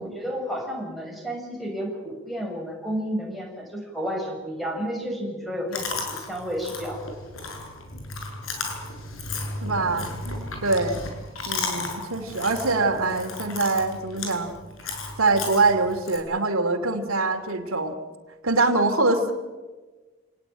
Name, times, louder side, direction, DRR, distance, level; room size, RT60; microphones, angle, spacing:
voice 1, 0.0-7.0 9.8-10.0, equal, ahead, -1 dB, 7.1 m, -31 dB
Chewing mastication, 5.7-16.2, left 3 dB, 80° left, 7.0 m, -34 dB
voice 2, 9.6-11.0 11.5-14.5 15.2-18.0 18.4-19.3, right 3 dB, 90° right, 6 dB, 2.9 m, -24 dB
28.5 x 19.5 x 9.1 m, 1.3 s
head